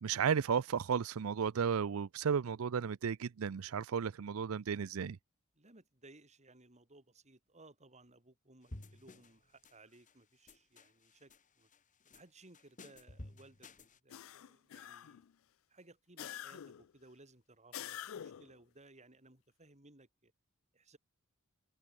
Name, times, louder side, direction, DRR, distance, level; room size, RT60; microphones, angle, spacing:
voice 1, 0.0-5.2, right 7 dB, 85° right, 0.5 m, -34 dB
voice 2, 5.5-11.7 12.1-15.2 15.7-20.3 20.7-21.0, right 2 dB, 35° right, 4.4 m, -61 dB
sound 1, 8.7-9.4 9.6-10.1 10.5-11.4 11.7-12.2 12.5-14.0, left 1 dB, 40° left, 1.9 m, -52 dB
sound 2, 14.1-15.3 16.2-16.9 17.7-18.6, left 10 dB, 70° left, 0.4 m, -47 dB
head